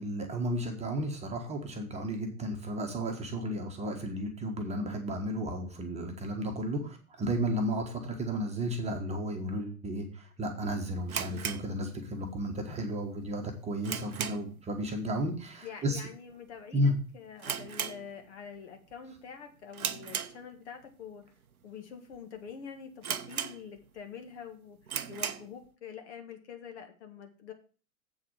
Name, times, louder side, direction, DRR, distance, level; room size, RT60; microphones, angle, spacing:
voice 1, 0.0-16.0 16.7-16.9, equal, 15° right, 3 dB, 1.4 m, -33 dB
sound 1, 11.1-12.4 12.7-12.8 13.3-14.7 15.0-15.3 15.5-15.6 16.3-16.6 16.9-17.0 17.4-18.6 18.9-19.2 19.7-20.9 21.4-21.5 22.1-22.2 22.5-22.6 23.0-24.0 24.4-24.5 24.8-25.6, right 8 dB, 70° right, 0.8 m, -37 dB
voice 2, 15.6-21.2 21.6-24.8 25.1-27.5, left 7 dB, 50° left, 5 dB, 1.8 m, -46 dB
7.8 x 4.8 x 7.3 m, 0.38 s
figure-of-eight pair, 100°, 44 cm